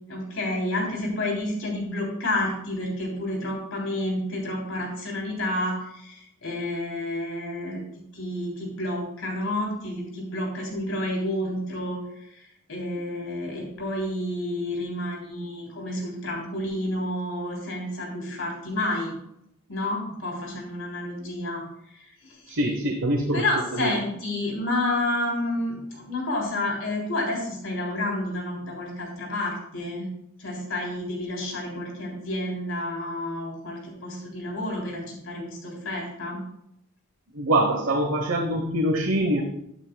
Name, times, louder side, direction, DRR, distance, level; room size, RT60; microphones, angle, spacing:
voice 1, 0.1-7.8 8.1-12.0 12.3-19.1 19.7-21.6 21.9-22.6 23.3-30.1 30.4-36.4, left 1 dB, 80° left, -1 dB, 3.5 m, -30 dB
voice 2, 22.5-23.4 23.7-24.0 37.3-39.4, right 1 dB, 70° right, 2 dB, 1.1 m, -24 dB
12.5 x 8.3 x 2.3 m, 0.77 s
head